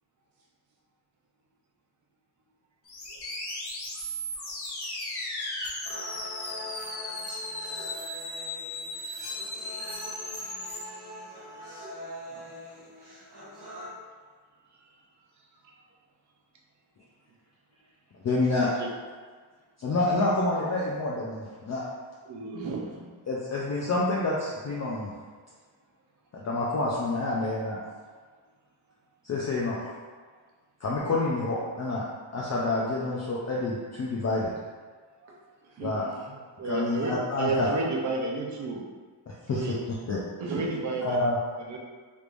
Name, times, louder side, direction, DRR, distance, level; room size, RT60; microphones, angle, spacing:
sound 1, 2.9-10.8, left 1 dB, 55° left, 0.9 m, -36 dB
sound 2, 5.9-13.9, equal, 55° right, 1.3 m, -43 dB
voice 1, 12.3-12.9 22.5-23.1 35.6-36.4 40.4-41.1, right 4 dB, 75° right, -3 dB, 0.8 m, -38 dB
voice 2, 18.2-18.7 19.8-21.8 23.3-25.1 26.3-27.8 29.2-29.9 30.8-32.0 32.3-34.5 35.8-36.0 36.6-37.7 39.3-40.2 41.0-41.4, left 2 dB, 35° left, -5 dB, 0.4 m, -28 dB
voice 3, 22.3-22.7 35.2-35.3 36.6-38.9 39.5-39.7 40.5-41.2 41.6-41.8, right 3 dB, 40° right, -1 dB, 0.5 m, -31 dB
3.4 x 3.1 x 2.5 m, 1.5 s
wide cardioid pair, 150°, 48 cm